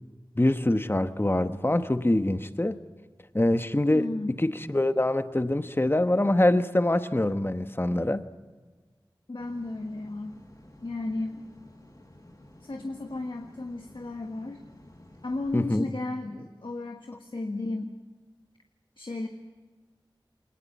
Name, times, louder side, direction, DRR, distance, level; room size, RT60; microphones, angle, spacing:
voice 1, 0.3-2.8 3.3-4.1 4.4-8.2 15.5-15.9, left 1 dB, 25° left, 10 dB, 1.1 m, -24 dB
voice 2, 3.9-4.4 9.3-10.4 10.8-11.4 12.6-14.6 15.2-18.0 19.0-19.3, left 2 dB, 75° left, 4 dB, 1.5 m, -34 dB
sound 1, 9.4-15.7, left 1 dB, 45° left, 6.3 m, -53 dB
22.5 x 19.5 x 8.4 m, 1.3 s
wide cardioid pair, 40°, 9 cm